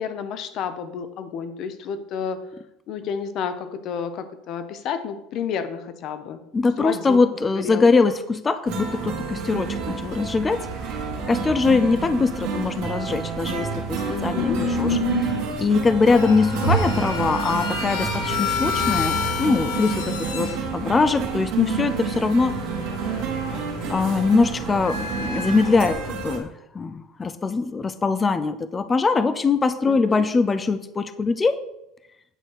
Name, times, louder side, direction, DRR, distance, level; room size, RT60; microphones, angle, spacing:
voice 1, 0.0-2.5 2.9-6.4 6.8-7.2 7.6-7.9 14.1-14.6 29.9-30.2, left 7 dB, 40° left, 10 dB, 0.8 m, -30 dB
voice 2, 6.5-10.9 11.3-15.3 15.6-22.6 23.9-31.6, left 4 dB, 15° left, 12 dB, 0.4 m, -22 dB
sound 1, 8.7-26.4, right 6 dB, 55° right, 1.8 m, -30 dB
sound 2, 14.4-21.3 22.3-25.9, left 3 dB, 85° left, 3.0 m, -28 dB
9.0 x 4.0 x 6.5 m, 0.85 s
cardioid pair, 170°, 0 cm